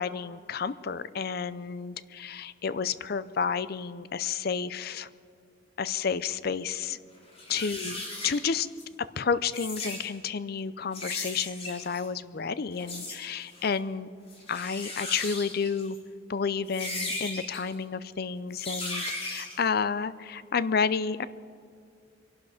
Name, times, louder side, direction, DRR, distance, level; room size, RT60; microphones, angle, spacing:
voice 1, 0.0-5.1 5.8-7.0 7.5-8.7 9.2-14.1 14.5-16.0 16.3-21.2, left 6 dB, 55° left, 15 dB, 0.5 m, -31 dB
sound 1, 6.8-6.9 7.3-8.8 9.4-10.1 10.9-12.1 12.8-13.2 13.5-13.7 14.3-16.0 16.7-17.6 18.5-19.6, left 2 dB, 30° left, 3.0 m, -37 dB
24.5 x 12.0 x 5.0 m, 2.2 s
head